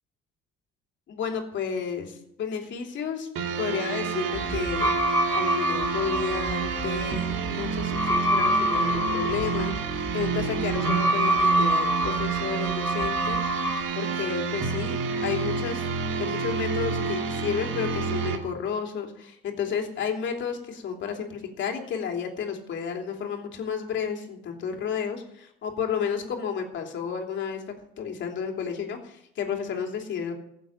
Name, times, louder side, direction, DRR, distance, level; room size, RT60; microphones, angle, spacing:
voice 1, 1.1-3.3 3.6-4.9 5.3-13.7 13.9-15.9 16.2-27.6 28.0-30.3, left 7 dB, 60° left, 3 dB, 3.1 m, -32 dB
sound 1, 3.4-18.4, right 5 dB, 65° right, 2.2 m, -29 dB
sound 2, 4.3-13.8, equal, 10° left, 3.8 m, -27 dB
15.5 x 7.5 x 8.7 m, 0.75 s
supercardioid pair, 90°, 21 cm